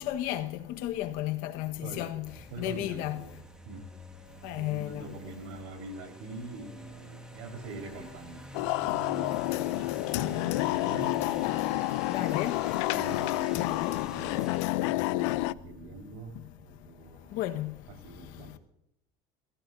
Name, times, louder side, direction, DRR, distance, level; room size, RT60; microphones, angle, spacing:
voice 1, 0.0-3.3 4.4-5.1 12.1-12.6 13.5-14.0 17.3-17.8, left 13 dB, 70° left, 1.4 m, -33 dB
sound 1, 2.2-14.6, right 1 dB, 5° right, 2.0 m, -47 dB
voice 2, 2.5-3.3 3.6-3.9 4.6-11.2 12.9-13.8 14.1-16.3 16.6-17.4 18.0-18.6, right 3 dB, 85° right, 4.6 m, -44 dB
sound 2, 8.5-15.5, left 19 dB, 85° left, 0.5 m, -29 dB
29.0 x 15.0 x 2.7 m
supercardioid pair, 125°, 15 cm